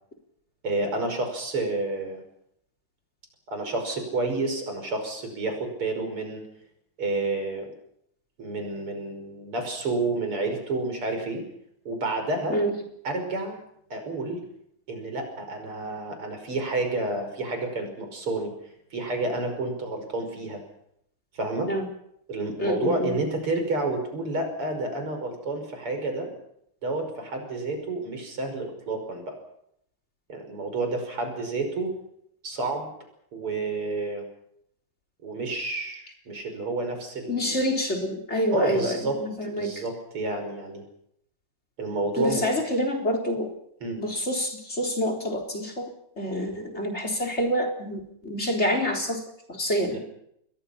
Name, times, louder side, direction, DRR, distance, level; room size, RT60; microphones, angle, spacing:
voice 1, 0.6-2.2 3.5-6.4 7.0-7.7 8.4-11.4 11.8-12.6 13.0-13.6 13.9-14.4 14.9-18.5 18.9-20.6 21.3-21.7 22.3-26.3 26.8-29.4 30.3-31.9 32.4-32.9 33.3-34.2 35.2-37.6 38.5-39.2 39.5-40.8 41.8-42.5 43.8-44.0 49.9-50.0, right 2 dB, 90° right, 5 dB, 6.4 m, -30 dB
voice 2, 22.6-23.1 37.3-39.7 42.2-43.5 44.0-45.9 46.2-49.2 49.5-50.0, equal, 30° left, 5 dB, 4.2 m, -27 dB
28.0 x 21.5 x 5.8 m, 0.74 s
omnidirectional pair, 2.4 m